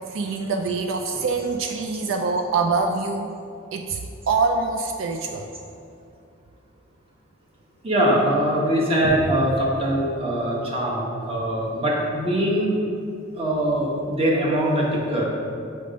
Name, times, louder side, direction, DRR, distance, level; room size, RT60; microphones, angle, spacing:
voice 1, 0.1-3.3 3.7-5.5, right 4 dB, 75° right, 4 dB, 0.4 m, -25 dB
voice 2, 7.8-12.7 13.4-15.2, right 1 dB, 30° right, -4 dB, 1.1 m, -22 dB
6.6 x 3.4 x 5.1 m, 2.6 s
head